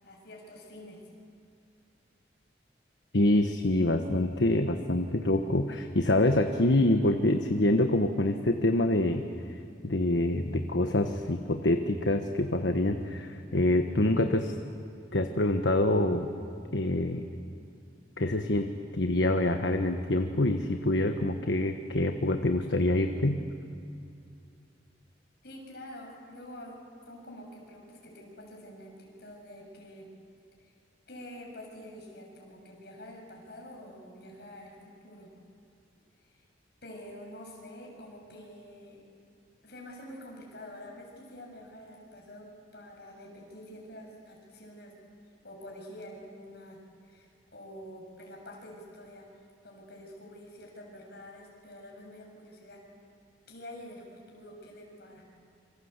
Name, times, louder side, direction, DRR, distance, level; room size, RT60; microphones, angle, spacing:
voice 1, 0.0-1.0 25.4-26.8 27.1-30.1 30.6-30.7 31.1-35.3 36.2-36.5 36.8-39.0 39.6-42.5 42.7-44.9 45.4-49.3 49.6-52.8 53.5-55.2, left 1 dB, 60° left, 0 dB, 7.2 m, -47 dB
voice 2, 3.1-14.5 15.1-16.3 16.7-17.3 18.2-18.7 18.9-23.4, left 1 dB, 80° left, 6 dB, 1.3 m, -26 dB
27.0 x 25.5 x 8.2 m, 2.5 s
head